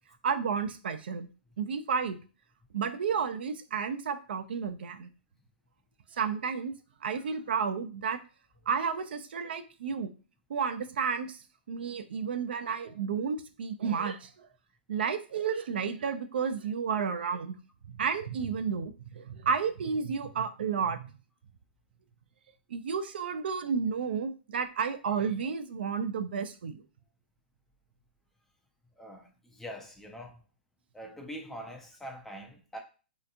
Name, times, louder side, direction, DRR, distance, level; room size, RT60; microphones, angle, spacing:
voice 1, 0.2-1.3 1.6-2.2 2.7-5.1 6.2-6.7 7.0-8.2 8.7-10.1 10.5-11.4 11.7-14.3 14.9-17.6 17.9-21.1 22.7-26.8, right 6 dB, 75° right, 0.4 m, -31 dB
voice 2, 29.0-30.4 30.9-32.8, equal, 5° left, 0.4 m, -44 dB
3.3 x 2.8 x 2.5 m
hypercardioid pair, 145°, 6 cm